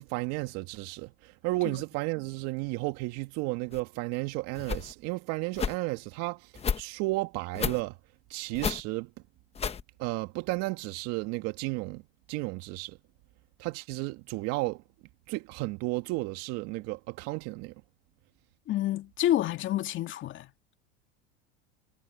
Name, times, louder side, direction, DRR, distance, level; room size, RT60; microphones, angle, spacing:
voice 1, 0.0-6.5 6.8-7.9 8.3-9.1 10.0-12.0 12.3-13.0 13.6-14.8 15.3-17.8, right 22 dB, 55° right, 2.1 m, -33 dB
sound 1, 3.7-3.8 4.5-4.9 5.5-5.7 6.5-6.8 7.5-7.8 8.5-8.8 9.5-9.8, left 6 dB, 20° left, 1.1 m, -31 dB
voice 2, 18.7-20.5, left 13 dB, 40° left, 2.4 m, -28 dB
hypercardioid pair, 105°, 30 cm